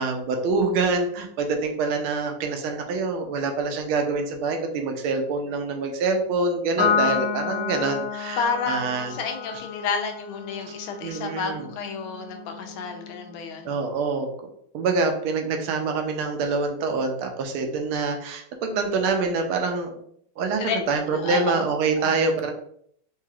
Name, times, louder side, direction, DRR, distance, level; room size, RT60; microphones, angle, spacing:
voice 1, 0.0-9.1 10.7-10.8 11.0-11.7 13.6-14.3 14.7-20.0 20.4-22.5, right 4 dB, 90° right, 4 dB, 1.5 m, -25 dB
Piano, 6.8-13.5, left 7 dB, 25° right, 0.9 m, -30 dB
voice 2, 8.4-13.7 20.6-20.8 21.1-21.7 22.0-22.2, left 5 dB, 80° left, 5 dB, 1.4 m, -30 dB
4.7 x 2.8 x 2.3 m, 0.66 s
omnidirectional pair, 2.3 m